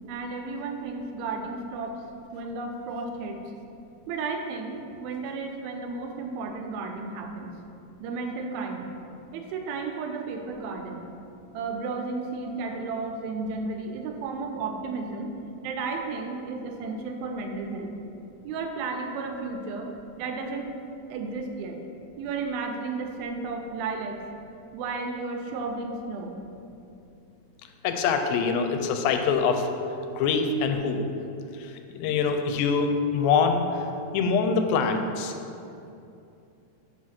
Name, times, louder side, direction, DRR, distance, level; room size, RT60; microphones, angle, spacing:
voice 1, 0.1-2.0 2.3-3.4 4.1-7.5 8.0-8.9 9.3-11.1 11.5-15.3 15.6-17.9 18.4-19.9 20.2-20.7 21.1-21.8 22.2-24.2 24.7-26.4, right 4 dB, 90° right, 3 dB, 2.5 m, -33 dB
voice 2, 27.8-29.6 30.1-31.0 31.9-33.6 34.1-35.3, left 5 dB, 85° left, 6 dB, 2.3 m, -24 dB
5.5 x 4.8 x 5.8 m, 2.7 s
omnidirectional pair, 4.1 m